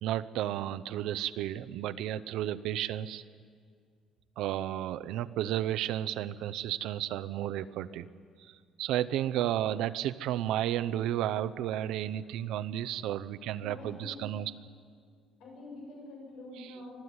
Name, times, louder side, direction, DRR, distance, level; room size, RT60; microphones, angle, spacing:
voice 1, 0.0-3.2 4.4-8.1 8.4-14.5 16.6-16.7, right 12 dB, 75° right, 13 dB, 0.7 m, -32 dB
voice 2, 13.6-14.3 15.4-17.0, left 2 dB, 80° left, -1 dB, 7.5 m, -46 dB
25.0 x 15.0 x 9.6 m, 2.1 s
cardioid pair, 175°, 0 cm